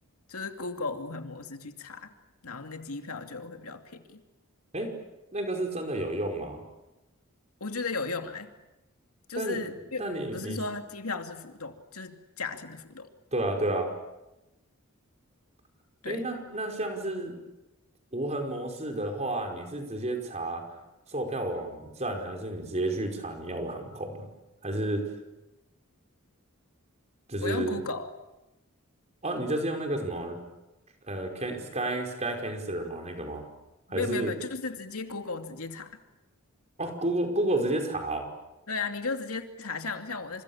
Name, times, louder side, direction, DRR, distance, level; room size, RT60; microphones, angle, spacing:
voice 1, 0.3-2.1 2.4-4.2 7.6-8.5 9.3-10.0 10.3-13.1 16.0-16.3 27.4-28.1 33.9-35.9 38.7-40.4, left 4 dB, 85° left, 6 dB, 2.6 m, -35 dB
voice 2, 5.3-6.6 9.3-9.6 10.0-10.6 13.3-13.9 16.0-17.4 18.1-20.6 21.1-24.3 24.6-25.1 27.3-27.8 29.2-30.4 31.1-33.4 33.9-34.3 36.8-38.3, right 1 dB, 30° right, 3 dB, 5.0 m, -31 dB
29.0 x 27.0 x 7.3 m, 1.0 s
head